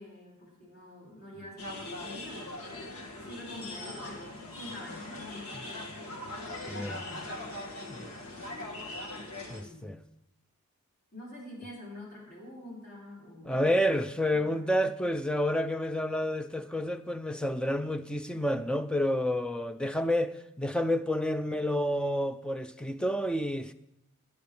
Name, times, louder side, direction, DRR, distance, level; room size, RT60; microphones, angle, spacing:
voice 1, 0.0-2.9 3.1-6.2 6.7-7.3 8.1-8.6 9.6-10.0 11.1-13.7 14.3-14.9, left 1 dB, 50° left, 6.0 m, -47 dB
sound 1, 1.6-9.6, left 2 dB, 85° left, 2.0 m, -41 dB
voice 2, 6.7-7.0 7.9-8.2 9.5-10.0 13.4-23.7, equal, 5° left, 0.4 m, -29 dB
19.5 x 9.5 x 3.3 m
head